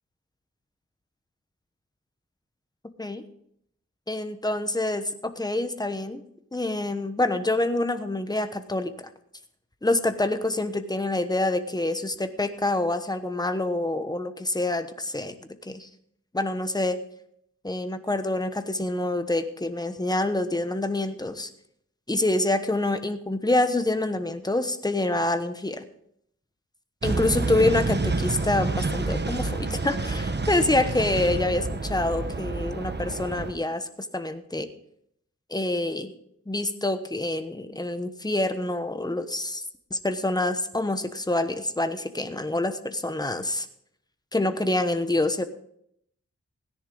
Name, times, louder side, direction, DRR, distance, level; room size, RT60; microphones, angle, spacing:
voice 1, 4.1-6.2 6.5-8.9 9.8-15.3 15.7-15.9 16.3-17.0 17.6-21.5 22.1-25.8 27.0-34.7 35.5-36.1 36.5-39.6 39.9-43.7 44.3-45.4, left 2 dB, 15° left, 9 dB, 1.0 m, -26 dB
sound 1, 27.0-33.5, right 3 dB, 35° right, 1.1 m, -28 dB
16.5 x 10.5 x 3.9 m, 0.70 s
wide cardioid pair, 90°, 29 cm